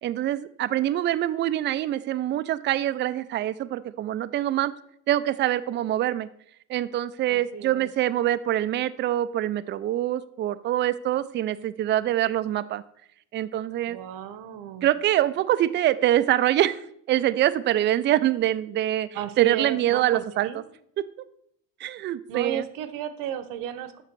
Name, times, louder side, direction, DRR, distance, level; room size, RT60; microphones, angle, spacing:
voice 1, 0.0-4.7 5.1-6.3 6.7-12.8 13.3-14.0 14.8-19.1 19.4-20.5 21.0-21.1 21.8-22.6, right 13 dB, 35° right, 14 dB, 0.4 m, -25 dB
voice 2, 7.3-7.9 13.9-14.9 19.1-20.6 22.3-24.0, right 10 dB, 70° right, 12 dB, 0.9 m, -33 dB
6.8 x 6.0 x 6.0 m, 0.71 s
cardioid pair, 135°, 34 cm